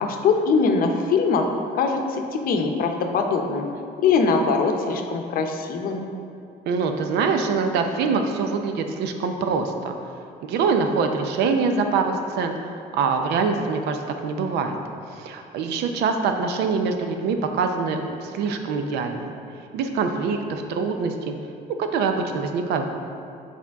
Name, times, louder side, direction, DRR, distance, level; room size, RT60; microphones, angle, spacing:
voice 1, 0.0-1.5 1.7-3.7 4.0-6.1, left 4 dB, 60° left, 4 dB, 0.7 m, -22 dB
voice 2, 6.7-9.9 10.4-12.5 12.9-14.8 15.1-19.4 19.7-21.3 21.7-22.9, right 5 dB, 80° right, 6 dB, 0.6 m, -24 dB
7.1 x 4.3 x 3.5 m, 2.5 s
cardioid pair, 110°, 17 cm